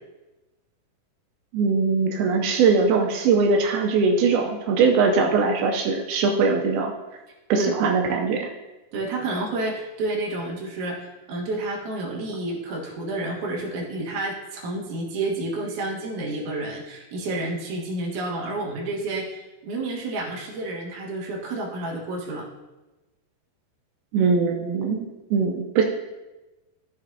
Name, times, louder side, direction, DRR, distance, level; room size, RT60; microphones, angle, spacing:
voice 1, 1.5-6.9 7.5-8.5 24.1-25.1 25.3-25.8, right 4 dB, 85° right, 1 dB, 2.6 m, -21 dB
voice 2, 8.9-22.5, right 2 dB, 60° right, -2 dB, 2.7 m, -30 dB
13.5 x 6.1 x 2.8 m, 1.1 s
omnidirectional pair, 4.4 m